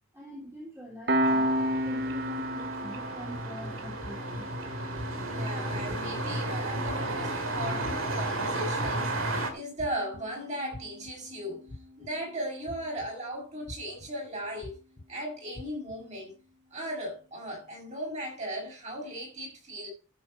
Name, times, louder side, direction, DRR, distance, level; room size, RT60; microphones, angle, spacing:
voice 1, 0.1-1.6 1.9-4.5, equal, 15° right, 3.5 m, -45 dB
Piano, 1.1-12.2, equal, 55° right, 1.0 m, -35 dB
sound 1, 1.2-9.5, right 1 dB, 90° right, 2.3 m, -33 dB
sound 2, 3.3-3.4 4.0-4.4 4.9-5.4 5.9-6.3 6.8-7.3 7.8-8.3 8.8-9.3 9.8-10.2 10.7-11.1 11.7-12.1 12.7-13.1 13.7-14.1 14.6-15.1 15.5-15.9, left 2 dB, 35° left, 0.7 m, -43 dB
voice 2, 5.2-11.7 12.0-14.8 15.1-16.4 16.7-19.9, equal, 35° right, 6.3 m, -37 dB
13.0 x 7.7 x 4.2 m
head